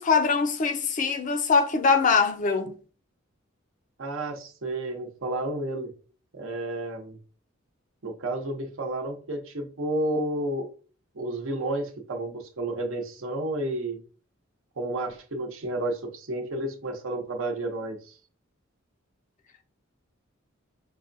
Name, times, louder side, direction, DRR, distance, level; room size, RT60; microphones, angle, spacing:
voice 1, 0.0-2.8, left 5 dB, 40° left, 0.5 m, -23 dB
voice 2, 4.0-5.9 6.3-7.2 8.0-10.7 11.1-14.0 14.8-18.1, right 1 dB, 75° right, 0.8 m, -31 dB
5.3 x 2.2 x 2.6 m
head